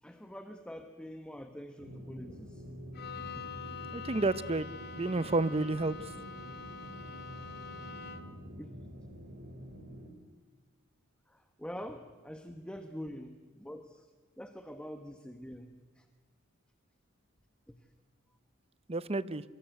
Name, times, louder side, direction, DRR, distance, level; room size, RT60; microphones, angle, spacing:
voice 1, 0.0-2.7 3.4-3.9 8.6-8.8 11.3-14.1 14.4-16.0 17.7-17.8, equal, 5° left, 7 dB, 1.1 m, -45 dB
sound 1, 1.8-10.1, equal, 50° right, 3.5 m, -47 dB
Bowed string instrument, 2.9-8.5, left 4 dB, 55° left, 2.3 m, -45 dB
voice 2, 3.9-4.7 4.9-5.9 18.9-19.4, right 2 dB, 30° right, 16 dB, 0.7 m, -30 dB
24.5 x 23.5 x 8.1 m, 1.4 s
head